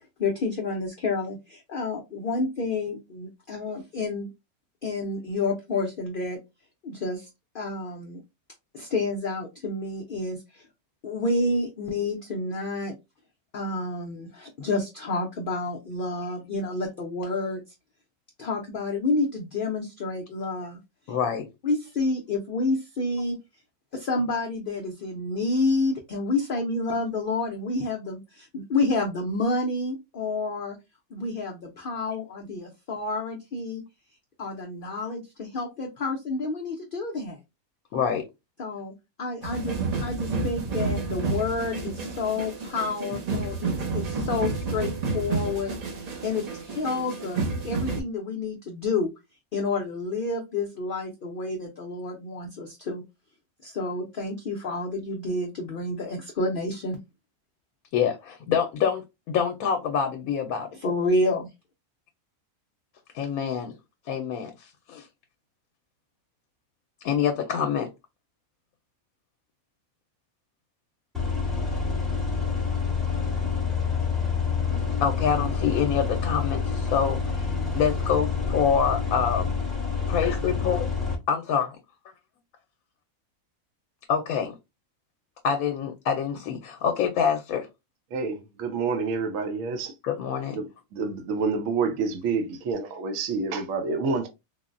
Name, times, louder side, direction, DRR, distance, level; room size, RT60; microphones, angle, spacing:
voice 1, 0.2-4.3 4.8-6.4 6.8-7.3 7.5-8.2 8.7-10.7 11.0-12.9 13.5-17.6 18.4-20.8 21.6-23.4 23.9-30.8 31.1-33.8 34.4-37.4 38.6-38.9 39.2-49.1 49.5-53.0 53.6-57.0 60.8-61.5, left 3 dB, 60° left, 0.5 m, -29 dB
voice 2, 21.1-21.5 37.9-38.2 57.9-60.7 63.1-63.7 64.1-65.1 67.0-67.9 75.0-79.4 80.1-80.8 81.3-81.7 84.1-84.5 85.4-87.7 90.0-90.6, left 7 dB, 80° left, 1.0 m, -26 dB
sound 1, 39.4-48.0, right 3 dB, 55° right, 0.4 m, -30 dB
sound 2, 71.1-81.2, left 5 dB, ahead, 0.8 m, -27 dB
voice 3, 88.1-89.9 90.5-94.3, right 4 dB, 70° right, 1.0 m, -28 dB
3.8 x 2.0 x 2.4 m
omnidirectional pair, 1.5 m